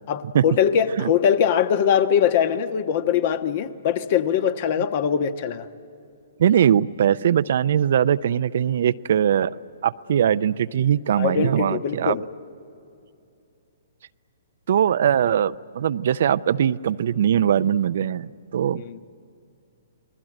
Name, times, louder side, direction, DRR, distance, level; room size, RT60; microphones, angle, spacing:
voice 1, 0.1-5.7 11.2-12.2 18.7-19.0, left 8 dB, 50° left, 10 dB, 1.2 m, -22 dB
voice 2, 6.4-9.5 9.8-12.2 14.7-18.8, right 9 dB, 60° right, 15 dB, 0.5 m, -21 dB
29.0 x 20.0 x 9.1 m, 2.6 s
hypercardioid pair, 125°, 0 cm